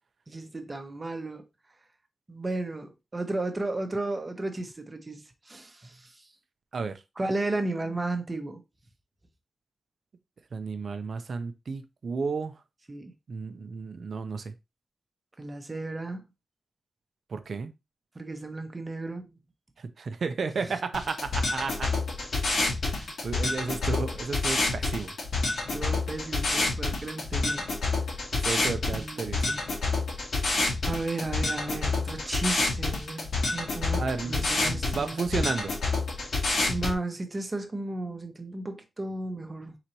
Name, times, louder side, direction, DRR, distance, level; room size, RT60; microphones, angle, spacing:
voice 1, 0.3-1.4 2.3-6.3 7.2-8.6 12.9-13.1 15.4-16.2 18.1-19.3 25.7-27.7 28.9-29.6 30.8-35.2 36.7-39.7, right 2 dB, 30° right, 0.9 m, -34 dB
voice 2, 10.5-12.6 13.3-14.5 17.3-17.7 19.8-21.9 22.8-25.1 28.4-29.6 34.0-35.7, right 4 dB, 65° right, 0.6 m, -33 dB
sound 1, 20.9-36.9, left 3 dB, 85° left, 1.9 m, -28 dB
4.6 x 4.0 x 2.8 m
wide cardioid pair, 115°, 0 cm